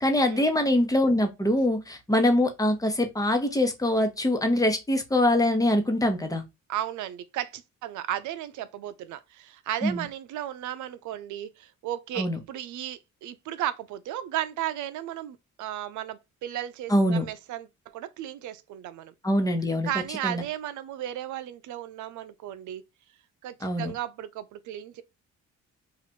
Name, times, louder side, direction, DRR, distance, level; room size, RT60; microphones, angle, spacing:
voice 1, 0.0-6.4 9.8-10.0 12.2-12.4 16.9-17.3 19.2-19.9 20.2-20.4 23.6-23.9, left 1 dB, 10° left, 0.9 m, -24 dB
voice 2, 6.7-19.1 19.8-22.8 23.4-25.0, right 12 dB, 75° right, 0.5 m, -35 dB
2.9 x 2.5 x 4.3 m
cardioid pair, 90°, 30 cm